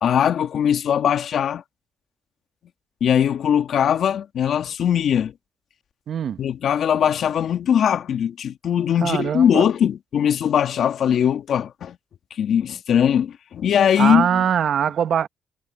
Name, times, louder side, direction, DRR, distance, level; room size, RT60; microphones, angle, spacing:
voice 1, 0.0-1.6 3.0-5.3 6.4-12.0 12.4-14.4, left 9 dB, 65° left, 2.0 m, -20 dB
voice 2, 6.1-6.4 9.0-9.7 14.0-15.3, right 8 dB, 60° right, 1.4 m, -22 dB
cardioid pair, 90°, 0 cm